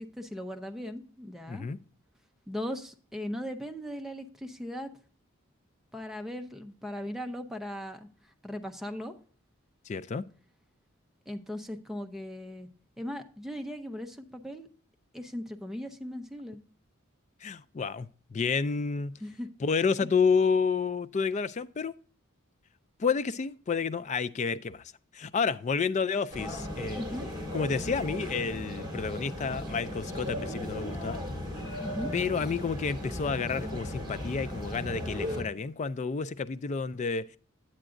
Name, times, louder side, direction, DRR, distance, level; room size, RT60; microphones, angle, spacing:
voice 1, 0.0-1.7 2.5-4.9 5.9-8.1 8.4-9.1 11.3-12.7 13.0-14.7 15.1-16.6 19.2-19.5 26.9-27.3 31.8-32.1, left 1 dB, ahead, 0.6 m, -38 dB
voice 2, 1.5-1.8 9.9-10.2 17.4-19.1 19.6-21.9 23.0-24.8 25.1-27.0 27.5-31.2 31.7-31.8 32.1-37.4, left 5 dB, 35° left, 0.3 m, -30 dB
sound 1, 26.3-35.4, left 1 dB, 20° right, 2.3 m, -36 dB
9.0 x 8.7 x 2.5 m
head